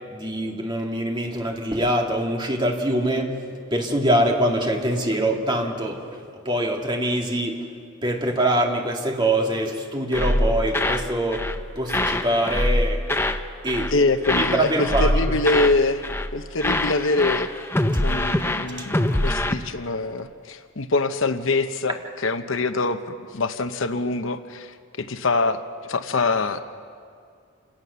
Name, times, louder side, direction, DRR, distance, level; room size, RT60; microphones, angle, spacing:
voice 1, 0.1-3.3 3.7-7.6 8.0-11.5 11.8-13.1 13.6-13.9 14.3-15.4 18.8-18.9, right 1 dB, 20° right, 1 dB, 2.1 m, -24 dB
sound 1, 10.1-11.1 11.3-11.6 11.9-13.4 13.7-14.0 14.2-16.3 16.6-19.5, left 1 dB, 10° left, 0.7 m, -24 dB
voice 2, 13.9-17.5 18.0-22.0 22.2-26.6, left 3 dB, 65° left, 9 dB, 0.9 m, -24 dB
28.0 x 18.0 x 6.8 m, 2.2 s
head